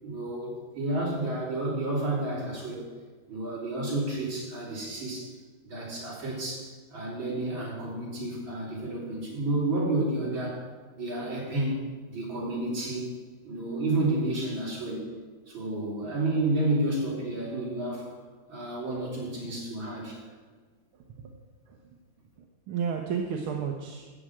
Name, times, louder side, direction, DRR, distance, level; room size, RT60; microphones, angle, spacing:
voice 1, 0.0-2.9 3.3-5.3 5.6-10.6 11.0-11.8 12.1-13.1 13.4-15.1 15.5-18.1 18.5-20.2, right 2 dB, 65° right, -5 dB, 4.4 m, -30 dB
voice 2, 20.9-21.8 22.4-24.1, right 7 dB, 85° right, 2 dB, 1.8 m, -34 dB
14.0 x 5.0 x 8.7 m, 1.4 s
omnidirectional pair, 2.3 m